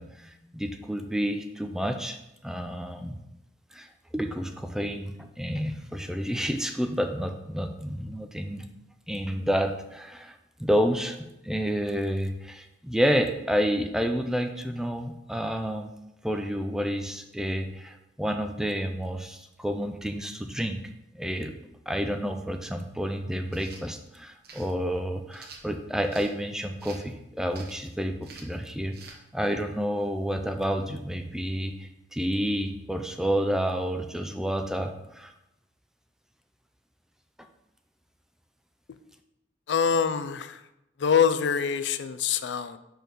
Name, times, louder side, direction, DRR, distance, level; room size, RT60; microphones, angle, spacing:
voice 1, 0.0-3.2 3.7-8.7 9.1-11.2 11.4-15.9 16.2-20.8 21.1-21.5 21.9-29.0 29.3-35.3, equal, 5° right, 6 dB, 0.4 m, -29 dB
sound 1, 23.5-23.8 24.4-24.7 25.3-26.3 26.8-27.1 27.5-27.9 28.2-28.6 28.9-29.2, right 4 dB, 55° right, 1.0 m, -47 dB
voice 2, 39.7-40.6 41.0-42.8, left 7 dB, 70° left, 11 dB, 0.4 m, -25 dB
5.2 x 4.5 x 6.2 m, 0.88 s
head